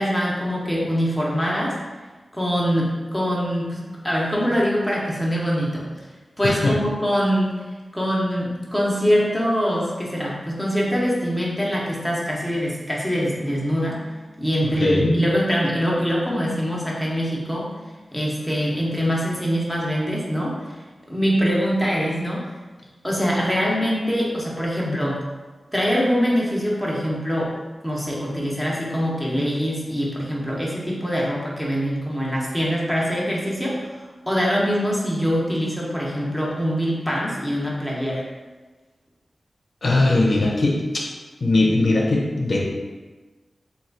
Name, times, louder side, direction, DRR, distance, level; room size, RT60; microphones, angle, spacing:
voice 1, 0.0-1.8 2.3-5.9 6.4-7.5 7.9-14.0 14.4-17.7 18.1-20.7 21.1-22.5 23.0-25.2 25.7-27.5 27.8-38.3, equal, ahead, -4 dB, 0.9 m, -23 dB
voice 2, 6.4-6.7 14.6-15.2 24.8-25.0 39.8-40.8 41.4-42.7, left 2 dB, 65° left, -3 dB, 0.6 m, -20 dB
3.0 x 2.4 x 3.8 m, 1.3 s
wide cardioid pair, 60°, 0 cm